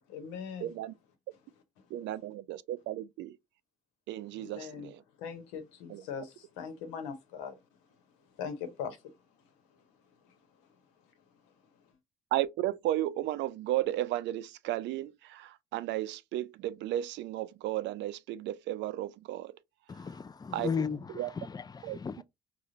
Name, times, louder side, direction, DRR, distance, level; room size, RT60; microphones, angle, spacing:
voice 1, 0.1-0.8 4.3-4.9 5.2-7.6 8.3-9.2 9.7-9.8 10.2-10.7 11.0-11.1 11.4-11.6 11.8-11.9, left 7 dB, 80° left, 0.9 m, -41 dB
voice 2, 0.6-0.9 1.9-3.4 4.1-5.0 5.9-6.0 12.3-19.5 20.5-20.7 21.1-21.3 21.8-22.0, right 14 dB, 65° right, 0.4 m, -34 dB
voice 3, 19.9-22.2, left 6 dB, 20° left, 0.4 m, -36 dB
4.8 x 2.2 x 2.8 m
hypercardioid pair, 50°, 20 cm